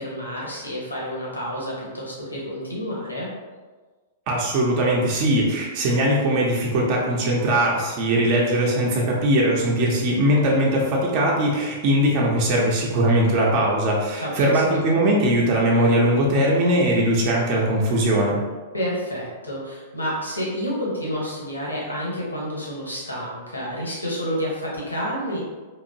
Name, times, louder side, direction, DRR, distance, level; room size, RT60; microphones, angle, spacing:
voice 1, 0.0-3.3 14.2-14.8 18.7-25.4, equal, 90° left, -4 dB, 1.1 m, -29 dB
voice 2, 4.3-18.4, right 1 dB, 45° right, -3 dB, 0.7 m, -20 dB
4.0 x 2.9 x 2.7 m, 1.3 s
figure-of-eight pair, 100°, 0 cm